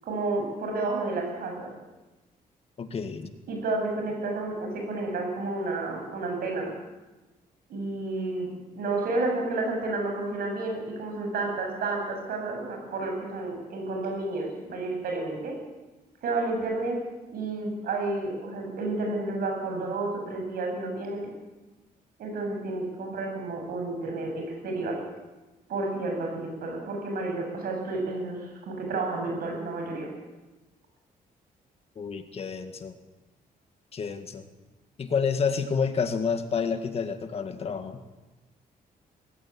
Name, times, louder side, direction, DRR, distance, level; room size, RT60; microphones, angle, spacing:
voice 1, 0.0-1.7 3.5-6.7 7.7-15.5 16.2-17.0 17.3-21.3 22.2-25.0 25.7-30.1, right 2 dB, 80° right, 2 dB, 7.8 m, -31 dB
voice 2, 2.8-3.3 32.0-32.9 33.9-34.5 35.0-38.0, left 6 dB, 40° left, 8 dB, 1.9 m, -29 dB
19.5 x 16.5 x 10.0 m, 1.1 s
cardioid pair, 155°, 15 cm